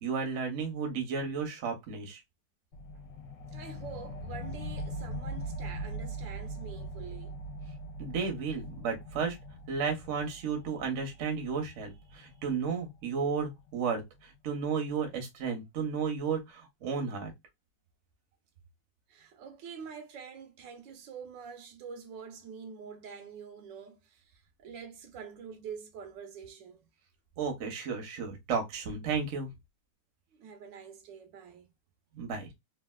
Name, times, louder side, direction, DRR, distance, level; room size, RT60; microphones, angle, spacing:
voice 1, 0.0-2.2 8.0-9.4 9.7-14.0 14.4-17.3 27.4-29.5 32.1-32.5, right 5 dB, 55° right, 0.9 m, -33 dB
sound 1, 2.7-13.8, right 1 dB, 70° left, 1.2 m, -42 dB
voice 2, 3.4-7.4 19.1-26.9 30.3-31.7, right 6 dB, 80° right, 1.3 m, -46 dB
3.3 x 2.4 x 2.2 m
omnidirectional pair, 2.1 m